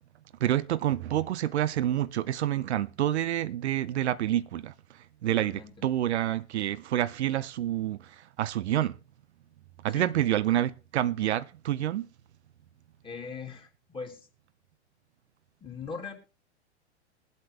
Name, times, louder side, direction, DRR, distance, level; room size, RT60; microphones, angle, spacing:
voice 1, 0.4-4.7 5.2-9.0 9.8-12.1, right 12 dB, 70° right, 0.6 m, -28 dB
voice 2, 5.2-5.7 9.9-10.1 13.0-14.3 15.6-16.1, left 5 dB, 15° left, 3.1 m, -40 dB
21.0 x 8.1 x 3.3 m
hypercardioid pair, 105°, 35 cm